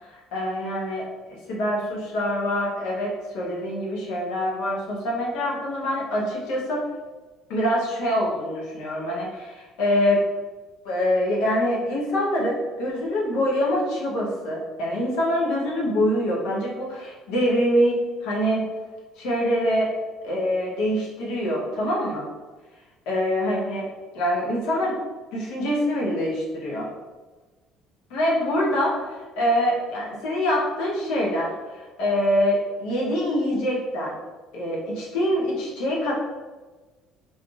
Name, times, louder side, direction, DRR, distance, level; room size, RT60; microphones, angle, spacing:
voice 1, 0.1-1.0 1.5-6.9 7.5-10.2 10.8-18.7 19.2-19.9 20.2-22.3 23.1-23.9 24.1-25.0 25.3-26.9 28.1-34.2 34.5-36.1, equal, 70° left, -3 dB, 0.8 m, -25 dB
3.6 x 2.6 x 2.4 m, 1.2 s
hypercardioid pair, 60°, 0 cm